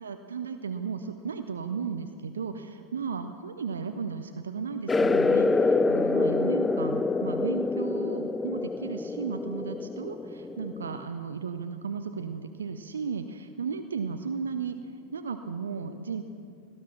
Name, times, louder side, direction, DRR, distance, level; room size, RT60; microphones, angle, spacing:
voice 1, 0.0-14.8 15.1-16.2, right 5 dB, 70° right, 8 dB, 0.6 m, -35 dB
sound 1, 4.9-11.0, left 3 dB, 10° left, 0.4 m, -26 dB
18.0 x 12.0 x 5.9 m, 2.3 s
figure-of-eight pair, 90°, 0 cm